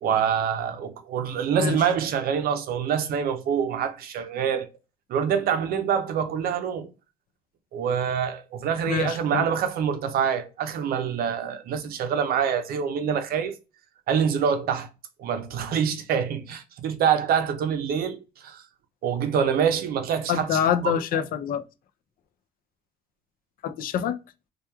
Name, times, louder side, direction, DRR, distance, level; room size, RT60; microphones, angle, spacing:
voice 1, 0.0-4.7 5.1-6.9 7.7-13.6 14.1-14.9 15.2-18.6 19.0-21.0, right 7 dB, 60° right, 0.5 m, -26 dB
voice 2, 8.9-9.5 20.3-21.7 23.6-24.2, left 8 dB, 60° left, 0.4 m, -25 dB
3.0 x 2.3 x 2.2 m
cardioid pair, 110°, 17 cm